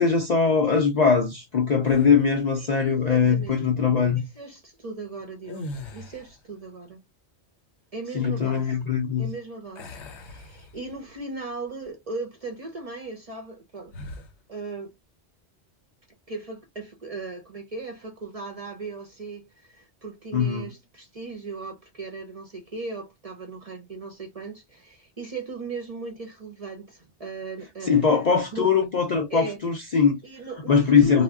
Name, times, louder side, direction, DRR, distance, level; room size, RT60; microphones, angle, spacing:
voice 1, 0.0-4.2 8.1-9.3 20.3-20.7 27.8-30.2 30.7-31.2, left 6 dB, 55° left, 0.5 m, -21 dB
sound 1, 1.8-2.5 5.4-6.5 9.7-11.2 11.7-11.9 13.9-14.4, left 1 dB, 75° left, 0.9 m, -40 dB
voice 2, 2.6-3.7 4.1-5.6 5.9-7.0 7.9-8.8 9.2-13.9 14.5-14.9 16.3-28.0 28.5-28.7 29.3-29.6 30.2-31.2, right 3 dB, 40° right, 0.6 m, -37 dB
2.1 x 2.1 x 3.4 m
omnidirectional pair, 1.2 m